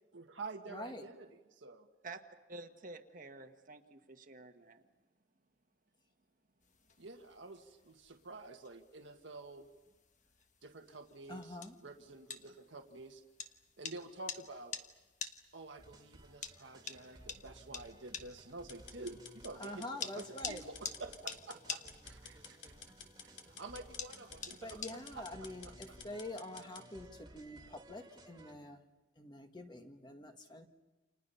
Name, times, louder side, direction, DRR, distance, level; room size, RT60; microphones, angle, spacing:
voice 1, 0.1-1.3 1.6-1.9 7.0-9.7 10.6-13.2 13.8-14.7 15.5-22.7 23.2-26.0, right 3 dB, 75° right, 4 dB, 1.7 m, -49 dB
voice 2, 0.7-1.0 11.3-11.7 19.6-20.6 24.6-28.8 29.2-30.7, left 1 dB, 25° left, 5 dB, 1.7 m, -46 dB
voice 3, 2.5-4.8, right 3 dB, 45° right, 6 dB, 1.5 m, -50 dB
sound 1, 6.6-25.3, left 6 dB, 40° left, 1.3 m, -49 dB
sound 2, 15.8-28.5, right 1 dB, 20° right, 2.2 m, -58 dB
sound 3, 18.7-26.9, left 6 dB, 65° left, 3.5 m, -53 dB
29.5 x 27.5 x 5.7 m, 1.2 s
head